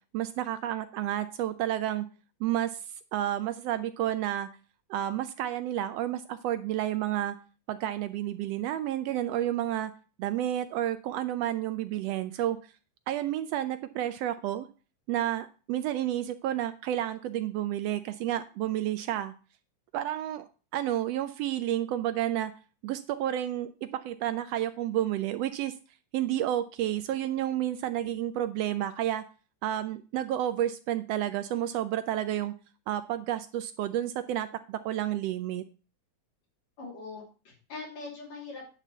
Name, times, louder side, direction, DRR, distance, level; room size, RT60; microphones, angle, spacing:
voice 1, 0.1-2.1 2.4-2.8 3.1-4.5 4.9-7.4 7.7-9.9 10.2-12.6 13.1-14.7 15.1-19.3 19.9-22.5 22.8-25.7 26.1-29.2 29.6-32.5 32.9-35.6, right 12 dB, 80° right, 10 dB, 1.4 m, -30 dB
voice 2, 36.8-38.6, left 3 dB, 65° left, -2 dB, 4.5 m, -42 dB
9.9 x 4.0 x 7.3 m, 0.36 s
omnidirectional pair, 3.4 m